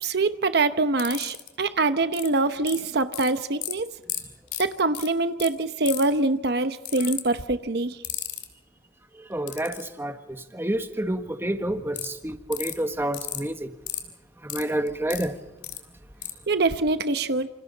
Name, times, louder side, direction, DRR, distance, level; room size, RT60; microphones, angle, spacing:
voice 1, 0.0-3.9 4.6-8.0 16.5-17.5, right 3 dB, 65° right, 10 dB, 0.9 m, -24 dB
sound 1, 1.0-1.5 2.1-2.3 2.7-3.3 3.6-3.7 4.1-4.2 4.5-4.6 4.9-5.1 5.4-5.5 5.9-6.2 6.9-7.2 8.0-8.4 9.5-9.9 12.0-12.1 12.5-12.7 13.1-13.4 13.9-14.0 14.5-15.3 15.6-15.8 16.2-16.3, left 13 dB, 75° left, 3.1 m, -32 dB
voice 2, 9.3-10.1 10.5-13.7 14.4-15.4, right 1 dB, 15° right, 7 dB, 1.4 m, -28 dB
28.0 x 27.5 x 4.1 m, 1.0 s
head